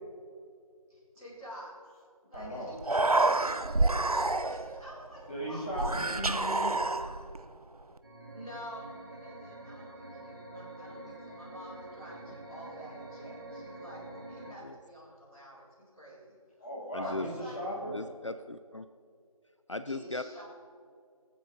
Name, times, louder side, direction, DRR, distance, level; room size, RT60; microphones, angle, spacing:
voice 1, 0.9-1.7 2.3-6.0 6.6-7.1 8.3-16.4 17.0-17.6 19.8-20.4, equal, 5° right, -18 dB, 2.4 m, -48 dB
voice 2, 2.3-2.7 5.3-6.7 16.6-17.9, equal, 15° left, -10 dB, 3.0 m, -37 dB
Human voice, 2.3-2.5 2.7-4.8 5.7-7.4, right 2 dB, 80° right, 0.8 m, -28 dB
sound 1, 8.0-14.5, right 1 dB, 35° right, 1.9 m, -46 dB
voice 3, 16.9-17.3 17.9-18.9 19.7-20.2, left 2 dB, 55° left, 10 dB, 0.5 m, -37 dB
24.0 x 9.0 x 4.1 m, 2.3 s
figure-of-eight pair, 170°, 19 cm